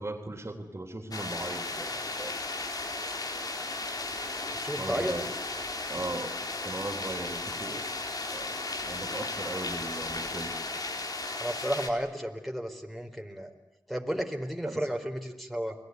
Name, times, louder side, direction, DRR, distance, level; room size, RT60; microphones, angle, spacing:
voice 1, 0.0-2.4 4.8-5.2 5.9-7.9 8.3-8.5 8.8-10.5 14.6-14.8, right 2 dB, 35° right, 5 dB, 3.4 m, -38 dB
sound 1, 1.1-11.9, left 2 dB, 55° left, 3.6 m, -35 dB
voice 2, 4.6-5.1 11.4-13.5 13.9-15.8, equal, ahead, 2 dB, 4.2 m, -33 dB
29.5 x 20.5 x 9.6 m, 0.93 s
cardioid pair, 55°, 8 cm